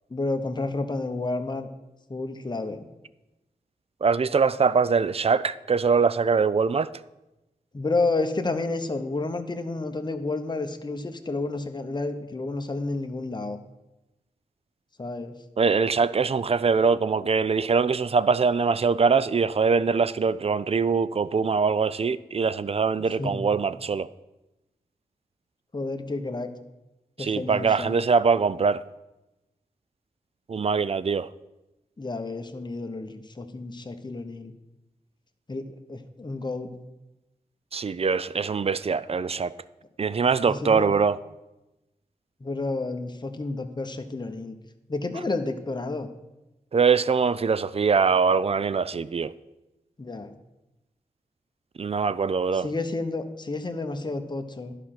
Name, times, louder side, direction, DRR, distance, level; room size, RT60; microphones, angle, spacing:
voice 1, 0.1-1.7 2.1-2.9 7.7-13.6 15.0-15.3 23.0-23.4 25.7-26.5 27.2-27.9 32.0-34.5 35.5-36.7 40.5-40.9 42.4-44.6 44.9-46.1 50.0-50.3 52.5-54.7, left 3 dB, 30° left, 0.9 m, -30 dB
voice 2, 4.0-6.9 15.6-24.1 27.2-28.8 30.5-31.3 37.7-39.5 40.0-41.2 46.7-49.3 51.8-52.7, right 5 dB, 40° right, 0.4 m, -23 dB
11.0 x 5.0 x 5.9 m
cardioid pair, 45°, 15 cm